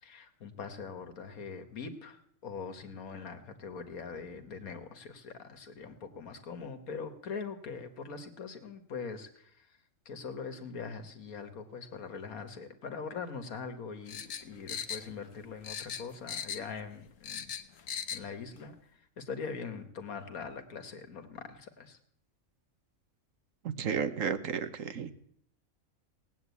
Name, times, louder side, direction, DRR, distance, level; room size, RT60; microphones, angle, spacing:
voice 1, 0.0-9.7 10.1-17.5 18.1-22.0, left 5 dB, 90° left, 7 dB, 1.9 m, -42 dB
sound 1, 14.1-15.4 15.6-16.8 17.1-18.3 18.6-18.7, left 8 dB, 70° left, 1.2 m, -38 dB
voice 2, 23.6-25.1, right 7 dB, 70° right, 10 dB, 1.3 m, -33 dB
18.0 x 8.7 x 8.3 m, 0.69 s
omnidirectional pair, 1.5 m